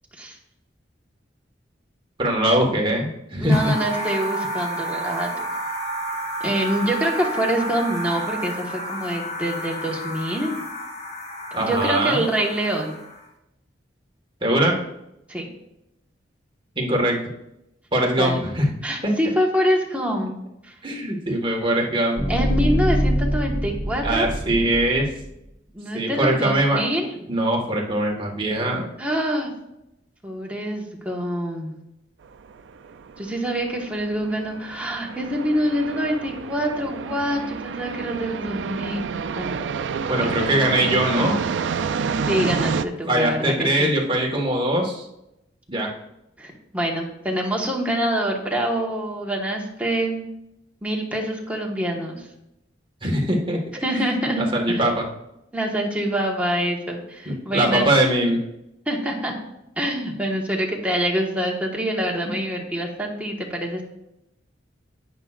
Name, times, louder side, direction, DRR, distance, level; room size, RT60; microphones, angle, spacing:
voice 1, 2.2-3.7 11.5-12.2 14.4-14.7 16.7-17.2 17.9-18.7 19.0-19.1 20.8-22.2 24.0-25.1 25.9-26.8 27.3-28.9 40.1-41.4 43.1-45.0 45.7-45.9 53.0-53.8 54.4-55.0 57.2-58.4, right 1 dB, 30° right, 0 dB, 1.6 m, -21 dB
voice 2, 3.4-5.3 6.4-10.5 11.6-13.0 15.3-15.5 18.2-18.5 18.8-20.4 20.6-20.7 22.3-24.3 25.7-27.3 29.0-29.5 30.2-31.7 33.2-39.6 40.2-40.3 42.2-44.0 46.4-50.2 50.8-52.2 53.8-54.9 55.5-57.9 58.9-59.3 59.8-63.8, equal, 10° right, -1 dB, 1.4 m, -25 dB
sound 1, 3.5-13.2, right 1 dB, 35° left, 1.4 m, -31 dB
sound 2, 22.2-25.3, equal, 10° left, 0.7 m, -24 dB
sound 3, 32.3-42.9, right 5 dB, 85° right, 0.4 m, -29 dB
11.0 x 8.8 x 2.5 m, 0.85 s
head